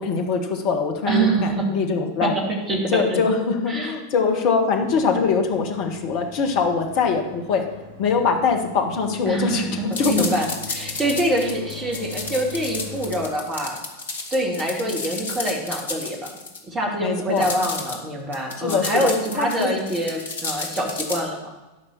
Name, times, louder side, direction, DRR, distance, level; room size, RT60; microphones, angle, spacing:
voice 1, 0.0-2.4 2.9-7.6 8.0-10.3 17.0-17.5 18.6-19.7, left 5 dB, 45° left, 4 dB, 1.6 m, -23 dB
voice 2, 1.1-1.7 2.2-3.2 3.7-3.9 9.3-13.8 14.3-16.3 16.7-21.4, right 1 dB, 20° right, 1 dB, 2.2 m, -25 dB
sound 1, 4.8-13.3, left 4 dB, 85° left, 3.8 m, -41 dB
sound 2, 9.9-16.6 17.4-18.0 18.3-21.2, left 3 dB, 65° left, 1.6 m, -32 dB
12.0 x 5.5 x 7.3 m, 1.1 s
figure-of-eight pair, 90°, 0 cm